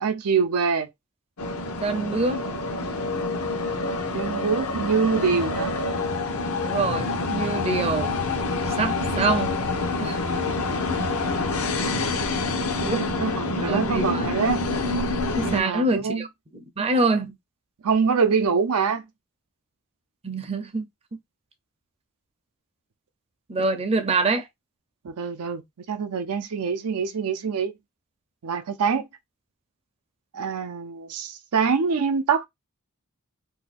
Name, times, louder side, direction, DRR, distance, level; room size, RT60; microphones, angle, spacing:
voice 1, 0.0-0.9 4.1-5.7 12.8-14.6 15.4-16.2 17.8-19.1 25.0-25.6 25.9-27.7 28.4-29.1 30.3-32.5, right 5 dB, 90° right, 0.5 m, -25 dB
sound 1, 1.4-15.6, left 3 dB, 75° left, 0.8 m, -27 dB
voice 2, 1.8-2.4 6.6-8.1 8.6-9.6 10.0-10.2 12.3-12.4 12.8-13.1 13.6-14.3 15.4-16.3 16.5-17.4 20.2-20.8 23.5-24.5, right 3 dB, 25° right, 0.5 m, -25 dB
2.7 x 2.2 x 4.1 m
head